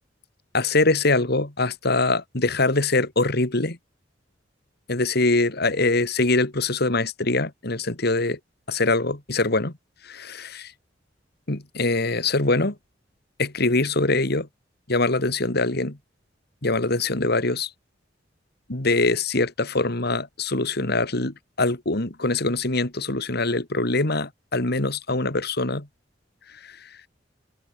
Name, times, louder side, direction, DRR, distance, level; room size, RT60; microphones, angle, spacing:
voice 1, 0.5-3.8 4.9-8.4 8.7-9.7 10.0-10.7 11.5-12.7 13.4-14.5 14.9-16.0 16.6-17.7 18.7-25.9 26.6-26.7, left 2 dB, 60° left, 2.7 m, -23 dB
head